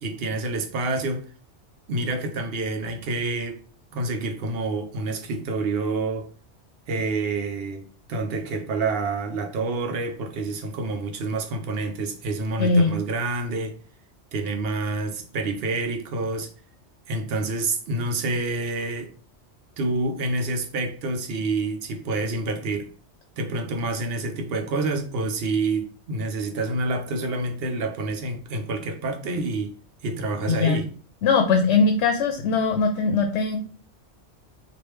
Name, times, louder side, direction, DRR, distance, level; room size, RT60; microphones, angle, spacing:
voice 1, 0.0-1.3 1.9-3.6 3.9-6.3 6.9-13.8 14.3-16.5 17.1-19.1 19.8-22.9 23.4-29.7 30.0-30.9, right 3 dB, 65° right, 0.8 m, -28 dB
voice 2, 12.6-12.9 30.5-30.8 31.2-33.6, left 4 dB, 75° left, 0.9 m, -20 dB
3.2 x 2.5 x 3.1 m
omnidirectional pair, 1.1 m